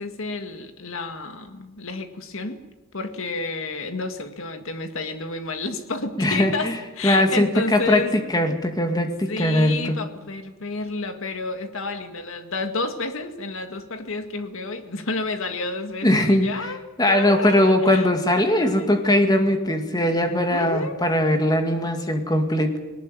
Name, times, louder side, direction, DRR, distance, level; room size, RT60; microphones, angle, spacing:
voice 1, 0.0-2.6 2.9-8.1 9.3-16.8 17.1-18.9 20.5-21.0, left 3 dB, 60° left, 8 dB, 2.0 m, -30 dB
voice 2, 6.2-6.7 7.0-10.0 16.0-16.7 17.0-22.8, left 1 dB, 20° left, 6 dB, 2.2 m, -20 dB
20.0 x 18.5 x 9.3 m, 1.1 s
head